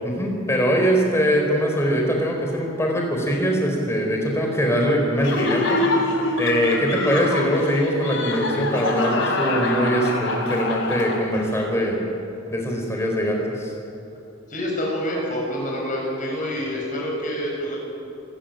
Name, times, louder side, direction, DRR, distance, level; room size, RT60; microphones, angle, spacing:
voice 1, 0.0-5.8 6.4-12.1 12.5-13.7, equal, 15° left, 1 dB, 4.0 m, -22 dB
Laughter, 5.2-11.5, left 2 dB, 70° left, 3.3 m, -25 dB
voice 2, 14.5-17.8, equal, 40° left, -2 dB, 6.7 m, -27 dB
28.5 x 13.5 x 9.1 m, 2.8 s
head